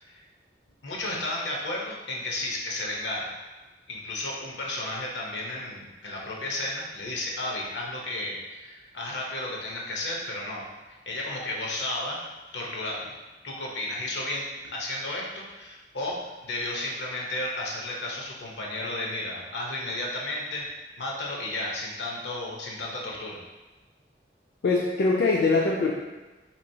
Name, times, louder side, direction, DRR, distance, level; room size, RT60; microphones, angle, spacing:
voice 1, 0.8-3.3 3.9-12.2 12.5-13.2 13.4-20.7 21.0-23.4, left 1 dB, 90° left, -2 dB, 0.8 m, -33 dB
voice 2, 24.6-25.9, left 3 dB, 60° left, -3 dB, 0.3 m, -22 dB
3.7 x 3.0 x 2.7 m, 1.2 s
head